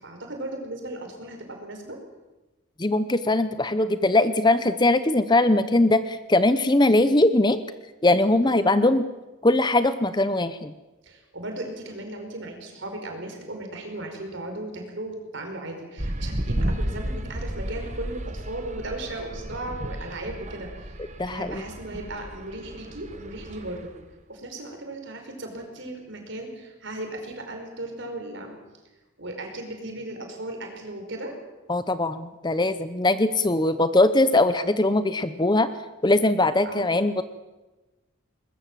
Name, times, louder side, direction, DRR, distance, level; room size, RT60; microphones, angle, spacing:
voice 1, 0.0-2.0 8.4-8.7 11.0-21.0 21.3-23.9 24.3-28.6 29.2-31.3 36.7-37.0, right 1 dB, 60° right, 4 dB, 5.1 m, -36 dB
voice 2, 2.8-7.6 8.0-9.1 9.4-10.7 21.2-21.6 31.7-35.7 36.0-37.2, left 2 dB, 20° left, 12 dB, 0.8 m, -21 dB
sound 1, 16.0-24.0, right 1 dB, 35° right, 1.4 m, -33 dB
21.5 x 20.5 x 7.5 m, 1.1 s
head